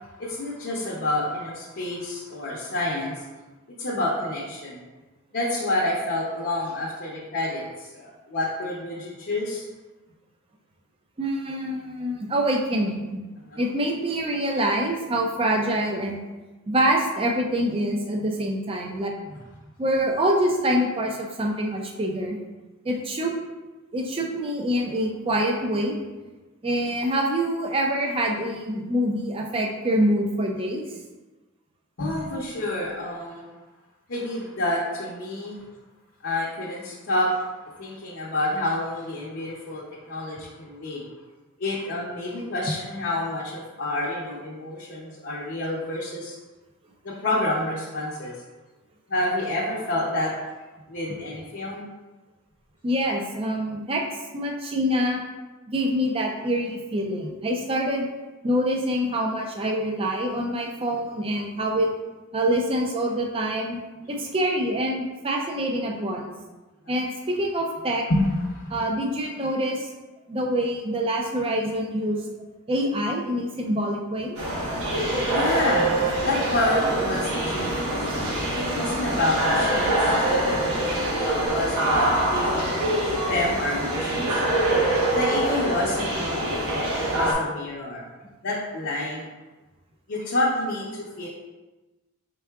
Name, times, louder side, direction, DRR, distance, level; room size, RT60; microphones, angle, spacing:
voice 1, 0.2-3.2 3.8-4.8 5.3-9.6 13.5-13.6 32.0-33.5 34.1-35.6 36.2-37.5 37.8-41.0 41.6-46.4 47.0-48.4 49.1-50.5 50.9-51.9 64.1-64.2 68.1-68.8 75.3-78.0 78.5-82.8 83.3-84.4 85.1-88.1 88.4-89.3 90.1-91.3, left 1 dB, 55° left, -5 dB, 0.6 m, -28 dB
voice 2, 11.2-13.2 13.6-16.2 16.7-19.1 19.8-22.4 22.8-23.3 23.9-26.0 26.6-30.8 52.8-54.0 54.3-55.2 55.7-58.1 58.4-61.9 62.3-63.8 64.1-66.3 66.9-68.0 68.7-69.9 70.3-72.2 72.7-74.4, equal, 25° right, 1 dB, 0.4 m, -25 dB
sound 1, 74.3-87.3, right 1 dB, 75° right, 1.1 m, -24 dB
4.6 x 3.5 x 2.3 m, 1.2 s
head